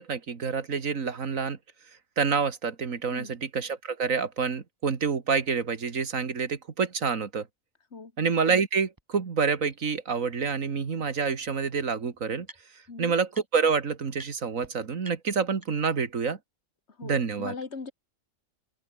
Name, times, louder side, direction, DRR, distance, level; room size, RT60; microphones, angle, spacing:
voice 1, 0.0-1.6 2.2-7.5 8.2-12.5 13.0-16.4 17.0-17.5, right 5 dB, 80° right, 2.2 m, -27 dB
sound 1, 9.0-9.1 9.7-9.8 11.1-11.2 11.4-12.9 13.3-13.8 14.1-14.3 14.6-14.7 15.0-16.0, right 1 dB, 15° right, 3.6 m, -51 dB
voice 2, 17.0-17.9, left 4 dB, 55° left, 2.7 m, -39 dB
omnidirectional pair, 1.4 m